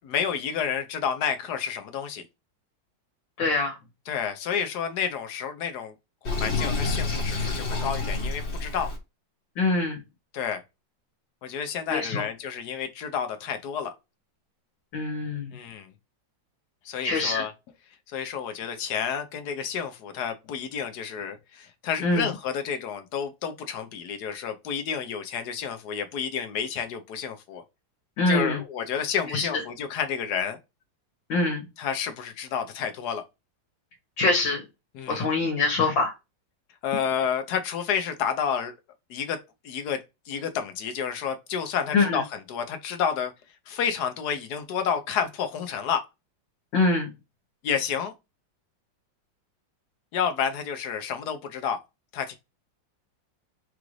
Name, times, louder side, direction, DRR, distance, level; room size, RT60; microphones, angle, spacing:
voice 1, 0.0-2.2 4.1-5.9 6.2-8.9 10.3-10.6 11.4-13.9 15.5-15.9 16.8-17.5 18.1-27.6 28.3-30.6 31.8-33.2 34.9-35.3 36.8-38.7 39.1-39.4 39.6-40.0 40.3-43.3 43.7-46.0 47.6-48.1 50.1-51.8 52.1-52.3, left 7 dB, 65° left, 1.2 m, -30 dB
voice 2, 3.4-3.8 9.6-10.0 11.9-12.2 14.9-15.5 17.0-17.5 22.0-22.3 28.2-28.6 29.3-29.5 31.3-31.7 34.2-34.6 35.1-36.1 41.9-42.2 46.7-47.1, left 3 dB, 85° left, 1.9 m, -24 dB
Sink (filling or washing), 6.2-9.0, left 3 dB, 45° left, 1.1 m, -28 dB
4.9 x 2.5 x 3.0 m
omnidirectional pair, 2.0 m